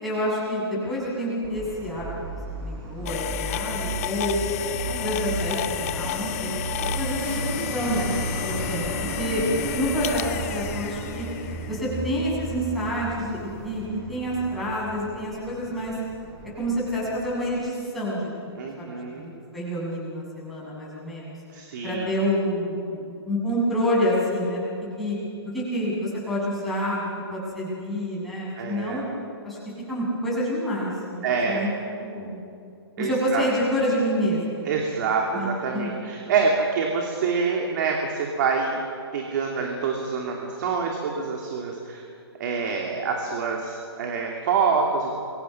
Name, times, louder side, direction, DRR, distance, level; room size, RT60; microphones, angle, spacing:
voice 1, 0.0-2.1 2.6-4.4 4.9-6.5 6.8-8.2 8.4-9.4 9.7-11.3 11.7-15.9 16.6-19.0 19.5-21.4 21.8-24.7 25.0-25.2 25.5-29.1 29.4-29.6 29.9-31.7 32.0-32.4 33.0-34.8 35.3-36.0, equal, ahead, -8 dB, 7.4 m, -28 dB
Truck, 1.4-17.7, right 3 dB, 25° right, 4.9 m, -34 dB
sound 1, 3.1-12.0, left 13 dB, 35° left, 0.7 m, -32 dB
voice 2, 18.6-19.3 21.5-22.1 28.6-29.0 31.2-31.7 33.0-33.5 34.7-38.8 39.1-42.0 42.4-45.1, right 5 dB, 45° right, 0 dB, 2.9 m, -26 dB
28.0 x 23.0 x 6.0 m, 2.6 s
hypercardioid pair, 155°, 14 cm